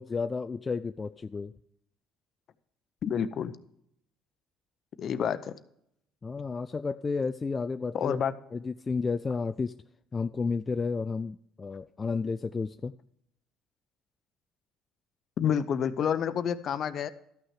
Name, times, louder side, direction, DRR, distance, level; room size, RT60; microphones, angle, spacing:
voice 1, 0.0-1.5 6.2-8.2 8.5-9.8 10.1-12.9, left 4 dB, 30° left, 9 dB, 0.3 m, -32 dB
voice 2, 3.0-3.5 5.0-5.6 7.9-8.3 15.4-17.1, left 8 dB, 55° left, 12 dB, 0.7 m, -28 dB
13.0 x 6.3 x 4.8 m, 0.74 s
supercardioid pair, 75°, 0 cm